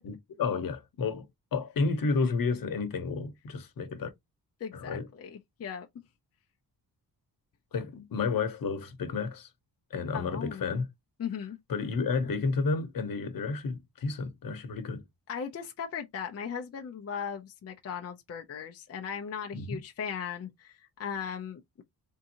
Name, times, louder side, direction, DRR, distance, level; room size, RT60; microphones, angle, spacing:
voice 1, 0.0-1.3 1.5-4.1 4.7-5.1 7.7-9.5 9.9-10.9 11.7-15.0 19.5-19.8, left 4 dB, 60° left, 1.0 m, -31 dB
voice 2, 4.6-5.9 10.1-10.7 11.2-11.6 15.3-21.8, left 7 dB, 40° left, 0.5 m, -38 dB
3.6 x 2.6 x 2.8 m
wide cardioid pair, 140°, 38 cm